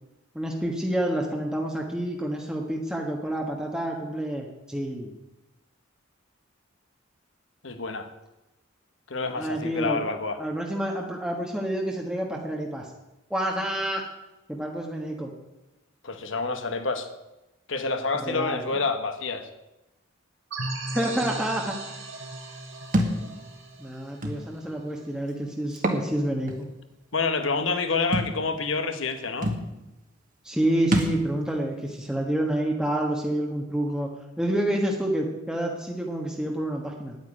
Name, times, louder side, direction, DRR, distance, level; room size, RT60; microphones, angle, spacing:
voice 1, 0.3-5.1 9.3-10.1 10.4-12.9 13.3-14.0 14.5-15.3 18.2-18.8 20.9-21.8 23.8-26.5 30.4-34.1 34.4-37.2, right 1 dB, 5° right, -1 dB, 1.4 m, -28 dB
voice 2, 7.6-8.1 9.1-10.4 16.0-17.1 17.7-19.5 27.1-29.5, left 4 dB, 70° left, 7 dB, 1.5 m, -28 dB
sound 1, 20.5-25.0, right 2 dB, 80° right, 3.0 m, -36 dB
Thump thud, 22.9-23.2 24.2-24.4 25.7-26.1 26.5-26.6 28.1-28.3 29.1-29.2 29.4-29.6 30.9-31.2, right 1 dB, 45° right, 1.8 m, -24 dB
9.8 x 9.3 x 9.9 m, 1.0 s
head